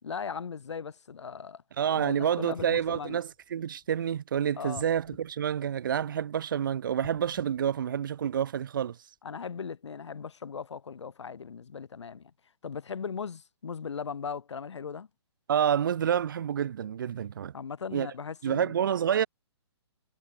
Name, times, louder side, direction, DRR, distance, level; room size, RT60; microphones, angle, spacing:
voice 1, 0.0-1.6 2.0-3.2 4.6-4.8 9.2-12.3 12.6-15.1 17.5-18.7, left 6 dB, 80° left, 4.6 m, -38 dB
voice 2, 1.8-9.0 15.5-17.5 17.9-18.1 18.4-19.3, right 9 dB, 45° right, 2.5 m, -28 dB
sound 1, 2.6-4.2 4.7-6.3 6.9-8.6 9.2-9.3, left 20 dB, 25° left, 6.3 m, -54 dB
hypercardioid pair, 175°, 15 cm